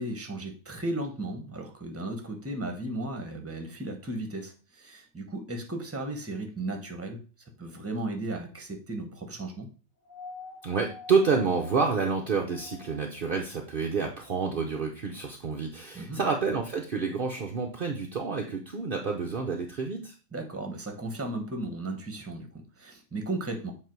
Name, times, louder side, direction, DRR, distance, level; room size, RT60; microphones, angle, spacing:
voice 1, 0.0-7.2 7.6-9.7 15.9-16.2 20.3-23.7, right 2 dB, 10° right, 3 dB, 0.9 m, -35 dB
sound 1, 10.0-13.3 14.7-14.8, left 5 dB, 85° left, 1.8 m, -46 dB
voice 2, 10.6-20.1, right 5 dB, 60° right, 1 dB, 0.5 m, -28 dB
7.6 x 3.4 x 4.5 m, 0.35 s
omnidirectional pair, 1.9 m